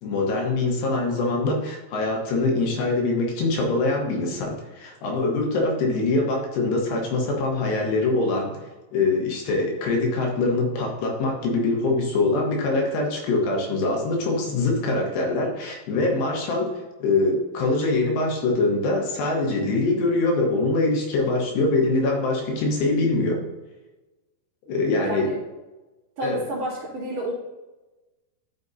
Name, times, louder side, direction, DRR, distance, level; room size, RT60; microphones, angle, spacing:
voice 1, 0.0-8.6 8.9-23.4 24.7-25.3 26.2-26.4, left 2 dB, 75° left, 0 dB, 3.4 m, -23 dB
voice 2, 25.0-25.4 26.2-27.3, right 1 dB, 40° right, -9 dB, 3.3 m, -30 dB
12.0 x 6.2 x 2.7 m, 1.1 s
omnidirectional pair, 5.0 m